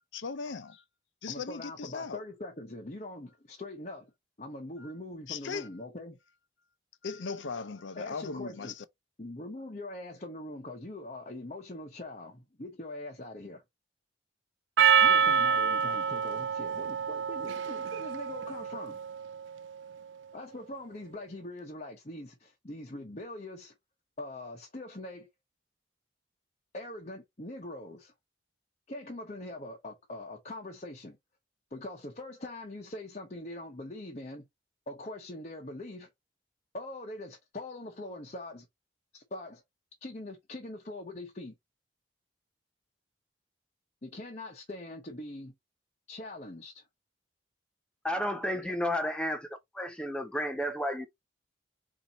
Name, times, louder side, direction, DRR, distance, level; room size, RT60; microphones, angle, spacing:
voice 1, 0.1-0.8 1.2-2.2 4.8-4.9 5.3-5.7 7.0-8.7, left 5 dB, 85° left, 0.6 m, -38 dB
voice 2, 1.3-4.1 4.4-6.2 7.9-8.7 9.2-13.6 15.0-19.0 20.3-23.7 24.2-25.3 26.7-28.1 28.9-31.2 31.7-34.4 34.9-36.1 36.7-38.7 39.1-39.6 40.0-41.5 44.0-45.5 46.1-46.8 48.6-48.7, left 1 dB, 40° left, 0.9 m, -42 dB
Percussion, 14.8-19.4, right 7 dB, 75° right, 0.3 m, -27 dB
voice 3, 48.0-49.5 49.7-51.1, equal, 5° left, 0.4 m, -32 dB
4.2 x 2.8 x 3.9 m
head